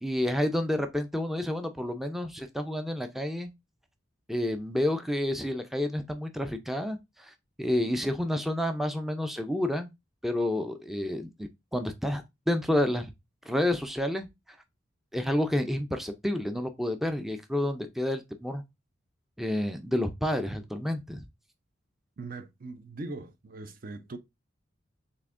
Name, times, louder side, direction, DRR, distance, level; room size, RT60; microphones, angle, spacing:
voice 1, 0.0-3.5 4.3-9.9 10.2-13.1 13.5-14.3 15.1-18.6 19.4-21.2, left 1 dB, ahead, 0.4 m, -29 dB
voice 2, 22.2-24.2, right 3 dB, 50° right, 0.5 m, -40 dB
6.8 x 2.8 x 2.5 m
head